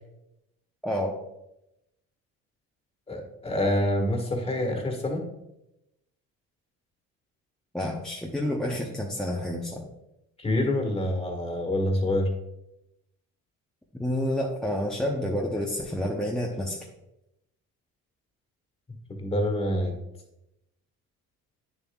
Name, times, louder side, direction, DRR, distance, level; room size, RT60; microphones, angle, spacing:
voice 1, 0.8-1.1 7.7-9.9 14.0-16.9, left 1 dB, ahead, -1 dB, 0.7 m, -29 dB
voice 2, 3.1-5.3 10.4-12.3 19.1-19.9, left 1 dB, 20° left, 3 dB, 1.7 m, -26 dB
8.8 x 7.1 x 2.4 m, 0.87 s
cardioid pair, 125°, 31 cm